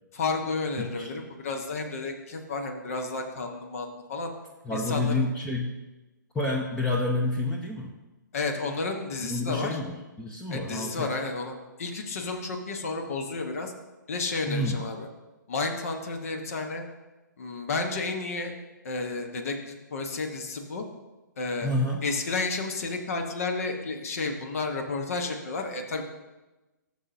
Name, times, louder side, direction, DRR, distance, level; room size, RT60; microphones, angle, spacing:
voice 1, 0.1-4.3 4.7-5.2 8.3-9.8 10.5-13.7 14.1-15.1 15.5-16.8 17.4-18.5 18.8-20.8 21.4-21.7 22.0-26.0, left 3 dB, 45° left, 4 dB, 1.1 m, -31 dB
voice 2, 0.8-1.1 4.6-5.7 6.3-7.9 9.2-11.1 14.5-14.8 21.6-22.0, left 2 dB, 5° left, -2 dB, 0.7 m, -29 dB
14.5 x 6.7 x 2.7 m, 1.1 s
figure-of-eight pair, 125°, 10 cm